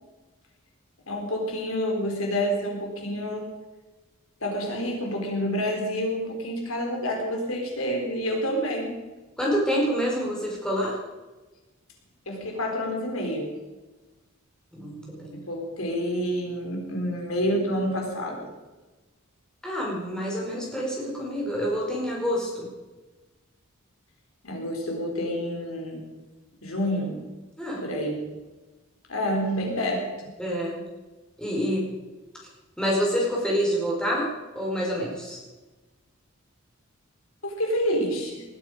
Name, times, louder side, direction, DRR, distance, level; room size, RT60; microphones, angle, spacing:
voice 1, 1.1-3.5 4.4-9.0 12.3-13.5 15.3-18.5 24.4-26.1 26.6-27.2 27.8-28.3 29.1-30.0 37.4-38.4, equal, 80° left, 1 dB, 3.9 m, -28 dB
voice 2, 9.4-11.0 14.7-15.4 19.6-22.7 27.6-27.9 30.4-30.8 31.4-31.9 32.8-34.3 34.5-35.4, equal, 5° left, -3 dB, 4.7 m, -27 dB
19.5 x 12.5 x 5.1 m, 1.2 s
head